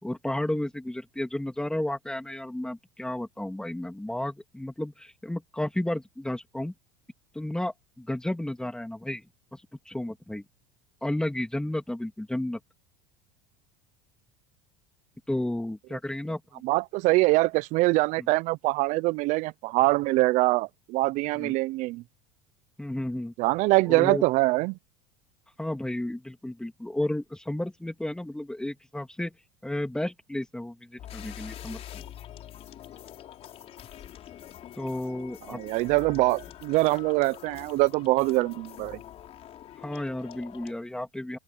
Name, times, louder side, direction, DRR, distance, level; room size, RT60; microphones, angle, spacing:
voice 1, 0.0-6.7 7.3-9.2 9.5-10.4 11.0-12.6 15.3-16.6 18.2-18.3 21.3-21.5 22.8-23.3 23.9-24.2 25.6-29.3 29.6-32.0 34.7-35.6 39.8-41.4, left 1 dB, 5° left, 3.1 m, -32 dB
voice 2, 16.6-22.0 23.4-24.8 35.5-39.0, right 21 dB, 60° right, 0.9 m, -24 dB
sound 1, 31.0-40.7, left 11 dB, 45° left, 4.0 m, -45 dB
open air
hypercardioid pair, 90°, 14 cm